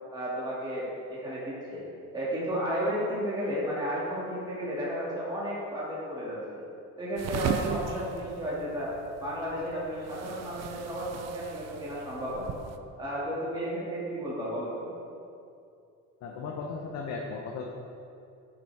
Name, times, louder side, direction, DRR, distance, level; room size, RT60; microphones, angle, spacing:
voice 1, 0.1-1.8 2.1-6.6 7.0-12.6 13.0-14.9, equal, 15° right, -8 dB, 1.8 m, -33 dB
sound 1, 7.2-12.8, right 8 dB, 55° right, 0.5 m, -37 dB
voice 2, 16.2-17.7, left 4 dB, 55° left, 0 dB, 0.8 m, -36 dB
10.5 x 6.0 x 3.3 m, 2.5 s
cardioid pair, 160°, 31 cm